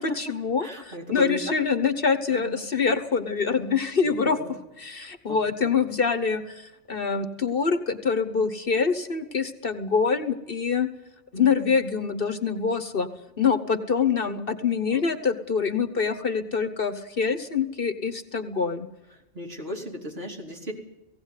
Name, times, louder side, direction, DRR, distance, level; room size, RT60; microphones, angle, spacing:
voice 1, 0.0-4.4 4.8-10.9 11.3-13.1 13.4-18.9, left 5 dB, 50° left, 8 dB, 1.4 m, -25 dB
voice 2, 0.6-1.6 2.3-2.6 4.0-4.5 5.3-5.7 14.9-15.0 19.3-20.7, left 1 dB, 55° right, 1 dB, 4.0 m, -36 dB
18.0 x 16.5 x 9.6 m, 0.96 s
omnidirectional pair, 1.3 m